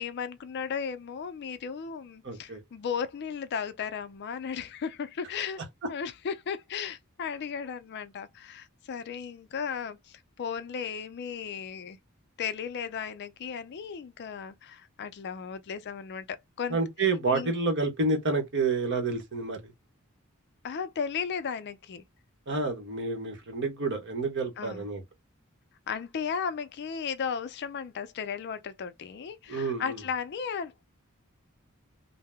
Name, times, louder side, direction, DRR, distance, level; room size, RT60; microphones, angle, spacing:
voice 1, 0.0-5.6 5.9-12.0 12.4-16.8 17.3-17.5 20.6-22.0 24.6-24.8 25.9-30.8, left 6 dB, 55° left, 0.4 m, -35 dB
voice 2, 2.2-2.6 16.7-19.6 22.5-25.0 29.5-30.0, right 3 dB, 60° right, 1.0 m, -29 dB
2.7 x 2.0 x 3.3 m
head